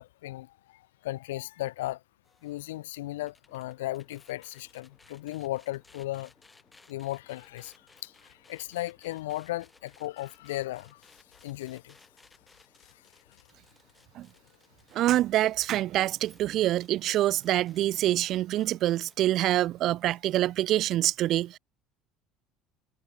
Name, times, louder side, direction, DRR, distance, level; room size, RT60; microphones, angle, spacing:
voice 1, 0.0-2.0 2.4-6.3 6.9-7.7 8.0-11.0 11.4-11.9, left 16 dB, 75° left, 1.1 m, -36 dB
sound 1, 2.2-19.2, left 3 dB, 15° left, 7.2 m, -61 dB
voice 2, 14.9-21.6, right 14 dB, 55° right, 0.4 m, -26 dB
hypercardioid pair, 65°, 0 cm